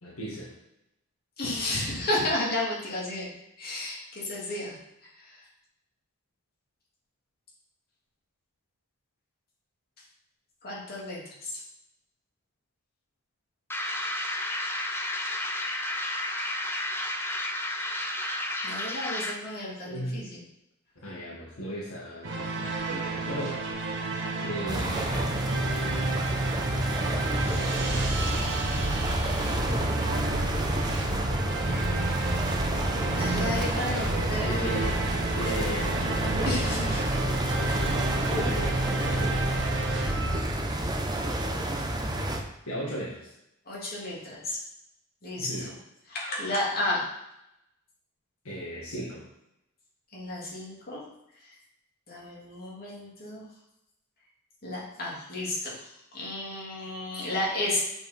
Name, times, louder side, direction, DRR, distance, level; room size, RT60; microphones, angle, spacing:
voice 1, 0.0-0.5 19.8-20.2 21.0-23.6 24.4-25.3 34.4-35.0 35.3-36.2 38.1-39.5 42.7-43.3 45.4-45.7 48.4-49.3, equal, 70° left, -5 dB, 1.9 m, -36 dB
voice 2, 1.4-3.3 3.6-4.8 10.6-11.6 18.6-20.4 33.2-34.9 36.4-37.0 43.7-44.6 45.2-45.7 46.1-47.0 50.1-51.0 52.1-53.4 54.6-57.8, left 1 dB, 45° left, -5 dB, 2.9 m, -32 dB
sound 1, 13.7-19.5, left 1 dB, 10° left, 0.7 m, -32 dB
sound 2, 22.2-40.4, right 2 dB, 55° right, 1.4 m, -30 dB
sound 3, 24.7-42.4, right 1 dB, 20° right, 0.8 m, -30 dB
8.0 x 4.7 x 5.3 m, 0.84 s
head